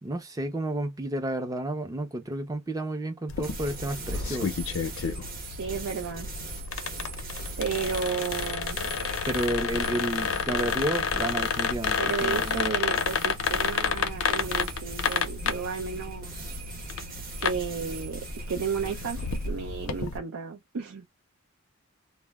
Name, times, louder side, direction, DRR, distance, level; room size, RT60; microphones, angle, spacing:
voice 1, 0.0-4.5 9.3-12.8, right 1 dB, 15° right, 0.4 m, -31 dB
sound 1, 3.3-20.2, left 6 dB, 70° left, 0.5 m, -31 dB
sound 2, 3.4-19.5, right 2 dB, 45° right, 0.8 m, -40 dB
voice 2, 5.5-6.3 7.6-8.8 12.0-16.5 17.4-18.2 18.5-21.0, right 6 dB, 75° right, 0.5 m, -33 dB
2.0 x 2.0 x 3.3 m
head